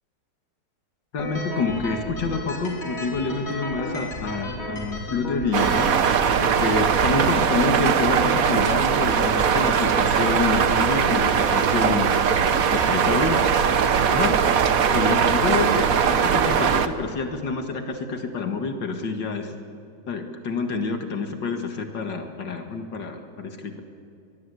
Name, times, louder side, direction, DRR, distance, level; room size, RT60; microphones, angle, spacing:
voice 1, 1.1-5.9 6.4-12.2 12.7-13.4 14.1-14.4 14.9-19.5 20.1-23.8, left 4 dB, 75° left, 5 dB, 2.4 m, -27 dB
sound 1, 1.2-6.3, equal, 50° left, 3.8 m, -33 dB
sound 2, 5.5-16.9, right 7 dB, 55° right, 1.3 m, -20 dB
23.0 x 20.0 x 8.2 m, 2.6 s
omnidirectional pair, 1.9 m